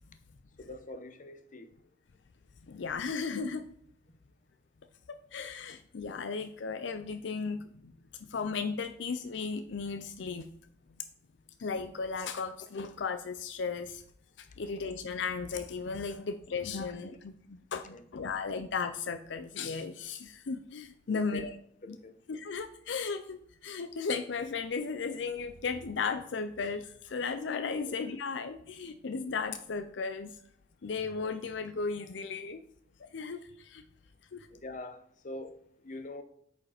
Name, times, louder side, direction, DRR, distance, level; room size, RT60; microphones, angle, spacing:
voice 1, 0.6-1.9 17.9-18.3 21.1-21.4 21.8-22.1 27.8-27.9 34.5-36.2, left 2 dB, 45° left, 9 dB, 0.8 m, -44 dB
voice 2, 2.7-3.6 5.1-7.9 8.2-10.5 11.6-14.0 14.4-21.5 21.9-22.0 22.3-30.3 30.8-32.6 33.0-33.8 34.3-34.5, left 5 dB, 75° left, 9 dB, 0.5 m, -35 dB
8.2 x 5.2 x 4.9 m, 0.65 s
head